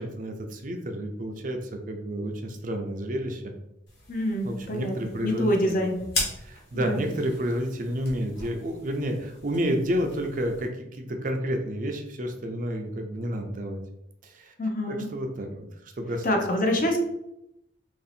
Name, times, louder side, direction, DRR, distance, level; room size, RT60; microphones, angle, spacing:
voice 1, 0.0-3.6 4.4-5.8 6.4-13.8 14.2-14.5 14.9-15.5 16.0-16.2, equal, 45° right, 4 dB, 0.5 m, -30 dB
sound 1, 3.9-10.7, left 2 dB, 65° left, 1.3 m, -38 dB
voice 2, 4.1-4.9 5.2-6.0 6.7-7.1 14.6-15.1 16.2-17.0, left 1 dB, 45° left, 2 dB, 0.6 m, -26 dB
3.0 x 2.7 x 4.1 m, 0.83 s
head